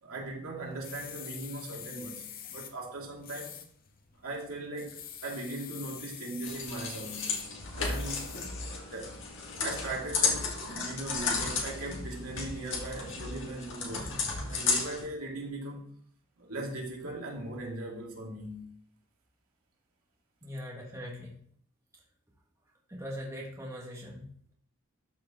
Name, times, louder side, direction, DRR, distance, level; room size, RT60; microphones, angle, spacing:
voice 1, 0.0-3.6 4.2-7.3 7.8-8.3 8.9-9.2 9.6-14.2 14.5-15.9 16.4-18.7, right 2 dB, 80° right, -3 dB, 2.5 m, -39 dB
sound 1, 0.6-8.7, left 9 dB, 40° left, 0.7 m, -46 dB
sound 2, 6.4-15.0, left 4 dB, 60° left, 1.8 m, -33 dB
voice 2, 20.4-21.4 22.9-24.5, equal, 15° right, -3 dB, 1.6 m, -41 dB
12.5 x 4.5 x 3.8 m, 0.62 s
head